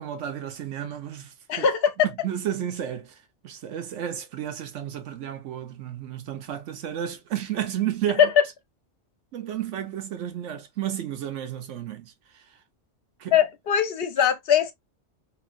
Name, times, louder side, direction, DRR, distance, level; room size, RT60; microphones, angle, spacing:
voice 1, 0.0-1.7 2.0-8.3 9.3-12.6 13.2-13.4, right 10 dB, 90° right, 1.1 m, -32 dB
voice 2, 1.5-1.9 8.2-8.3 13.3-14.7, left 8 dB, 60° left, 0.8 m, -21 dB
2.9 x 2.7 x 2.4 m
omnidirectional pair, 1.2 m